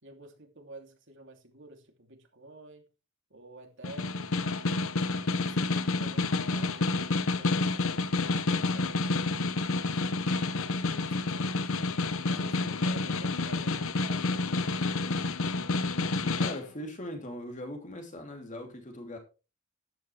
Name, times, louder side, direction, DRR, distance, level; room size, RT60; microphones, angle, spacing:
voice 1, 0.0-2.8 3.3-4.2 5.3-10.1 10.9-11.7 12.3-15.3, right 2 dB, 60° right, 2.9 m, -51 dB
Snare drum, 3.8-16.6, left 3 dB, 70° left, 0.9 m, -29 dB
voice 2, 16.4-19.2, left 1 dB, 35° left, 3.2 m, -40 dB
14.0 x 10.5 x 3.4 m
head